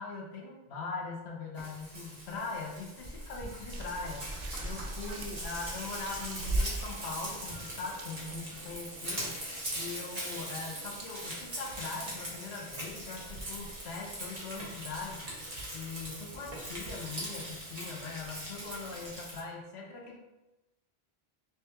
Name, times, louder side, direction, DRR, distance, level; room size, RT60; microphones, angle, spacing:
voice 1, 0.0-4.3 4.6-9.4 9.8-15.3 15.7-20.2, left 4 dB, 85° left, 0 dB, 1.0 m, -41 dB
Frying (food), 1.6-19.4, right 1 dB, 40° right, 1.0 m, -41 dB
sound 1, 3.7-19.1, right 1 dB, 65° right, 0.7 m, -43 dB
4.7 x 2.2 x 2.8 m, 1.0 s
omnidirectional pair, 1.1 m